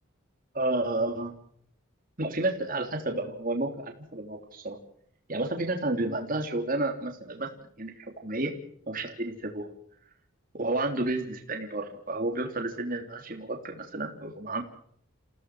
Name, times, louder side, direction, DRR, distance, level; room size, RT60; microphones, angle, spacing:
voice 1, 0.5-1.3 2.2-4.8 5.3-7.5 7.8-8.5 8.9-9.7 10.5-14.6, right 2 dB, 40° right, 3 dB, 3.3 m, -31 dB
29.0 x 16.5 x 6.2 m, 0.64 s
head